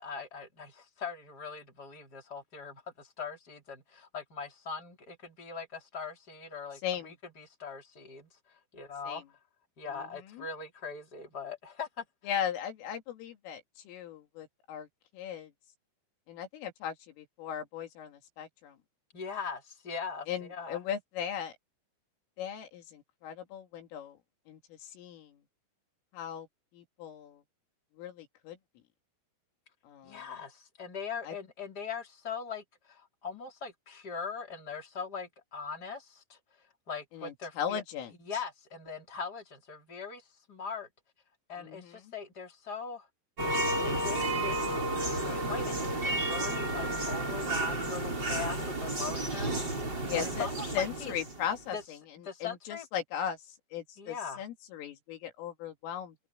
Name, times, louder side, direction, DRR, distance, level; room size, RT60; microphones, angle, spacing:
voice 1, 0.0-8.3 8.7-9.2 9.8-12.0 19.1-20.8 30.0-36.4 36.9-37.8 38.2-40.9 41.5-43.1 43.7-44.6 45.0-49.6 50.1-50.5 50.8-51.1 51.7-51.8 52.2-52.9 54.0-54.4, left 5 dB, 20° left, 4.6 m, -41 dB
voice 2, 6.8-7.1 9.1-9.2 9.9-10.5 12.2-14.9 15.1-15.5 16.3-18.8 20.3-21.5 22.4-24.2 24.5-25.4 26.1-26.5 26.7-27.4 28.0-28.6 29.8-30.3 31.2-31.4 37.1-38.1 41.6-42.0 50.0-50.5 50.7-56.2, left 8 dB, 80° left, 5.0 m, -38 dB
sound 1, 43.4-51.7, right 1 dB, 20° right, 7.6 m, -32 dB
omnidirectional pair, 5.8 m